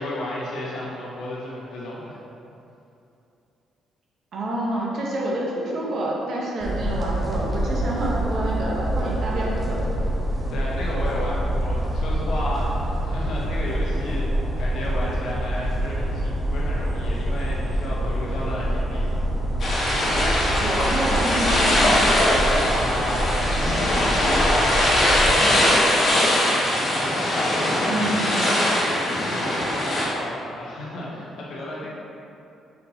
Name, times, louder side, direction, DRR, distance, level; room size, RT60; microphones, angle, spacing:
voice 1, 0.0-2.2 10.5-19.2 22.6-23.3 24.1-28.0 28.8-31.9, left 1 dB, 75° left, -5 dB, 0.8 m, -33 dB
voice 2, 4.3-9.8 20.6-21.9 27.9-28.4, right 1 dB, 60° right, -3 dB, 0.9 m, -27 dB
sound 1, 6.6-25.3, right 1 dB, 10° right, 0.8 m, -26 dB
sound 2, 19.6-30.0, left 1 dB, 55° left, 1.2 m, -21 dB
4.4 x 4.0 x 2.8 m, 2.8 s
cardioid pair, 90°, 0 cm